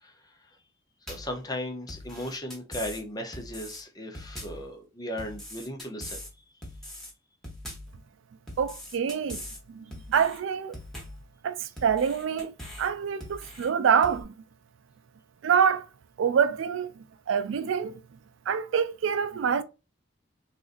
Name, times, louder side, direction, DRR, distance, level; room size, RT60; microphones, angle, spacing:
voice 1, 1.1-6.2, left 1 dB, 20° left, 0.7 m, -36 dB
sound 1, 1.1-1.4 1.9-3.0 3.3-3.8 4.1-4.7 5.2-6.3 6.6-7.1 7.4-8.0 8.5-9.6 9.9-10.4 10.7-11.2 11.8-12.9 13.2-13.7 14.0-14.2, left 1 dB, ahead, 1.1 m, -41 dB
voice 2, 8.6-9.4 9.7-10.8 11.4-12.5 12.8-14.3 15.4-15.9 16.2-16.9 17.3-18.0 18.5-19.6, right 7 dB, 80° right, 0.4 m, -26 dB
3.8 x 2.5 x 2.5 m
head